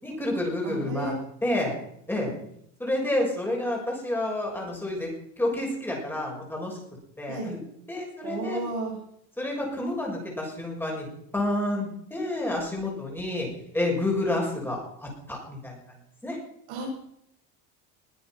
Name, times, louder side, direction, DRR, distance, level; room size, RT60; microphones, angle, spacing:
voice 1, 0.0-1.1 1.4-1.7 2.1-2.3 2.8-5.1 5.4-6.8 7.2-7.6 7.9-8.6 9.4-11.1 11.3-13.5 13.7-15.8 16.2-16.4, left 1 dB, 5° left, -1 dB, 6.1 m, -29 dB
voice 2, 0.6-1.2 7.3-7.5 8.2-8.9 16.7-16.9, right 2 dB, 75° right, 0 dB, 7.3 m, -33 dB
21.5 x 9.3 x 6.0 m, 0.71 s
cardioid pair, 140°, 33 cm